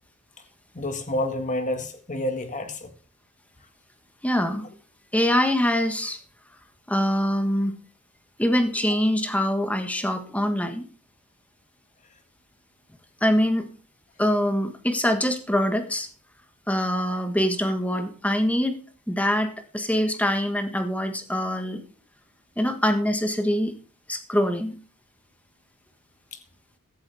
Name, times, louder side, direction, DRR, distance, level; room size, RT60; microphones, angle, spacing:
voice 1, 0.7-2.9 26.3-26.4, left 1 dB, 35° left, 7 dB, 1.9 m, -29 dB
voice 2, 4.2-4.7 5.1-6.2 6.9-7.7 8.4-10.8 13.2-13.7 14.2-16.1 16.7-18.8 19.1-21.8 22.6-23.7 24.1-24.7, equal, 5° left, 7 dB, 1.5 m, -24 dB
16.0 x 11.5 x 3.5 m, 0.40 s
head